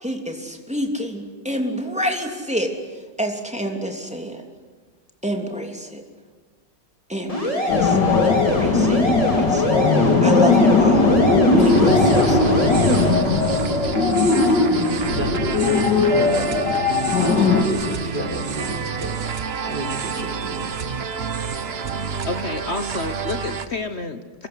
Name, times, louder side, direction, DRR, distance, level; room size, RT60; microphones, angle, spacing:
voice 1, 0.0-2.7 3.2-4.4 5.2-6.0 7.1-11.1 11.5-12.4, equal, 5° right, 3 dB, 3.0 m, -27 dB
sound 1, 7.3-13.1, equal, 20° left, 4.6 m, -24 dB
sound 2, 7.7-17.6, left 3 dB, 80° left, 2.7 m, -18 dB
sound 3, 11.6-23.7, right 5 dB, 40° right, 1.2 m, -28 dB
voice 2, 15.1-20.8, right 1 dB, 80° right, 0 dB, 5.6 m, -31 dB
voice 3, 22.2-24.5, left 3 dB, 40° left, 9 dB, 1.2 m, -29 dB
26.0 x 22.0 x 9.7 m, 1.4 s
omnidirectional pair, 1.9 m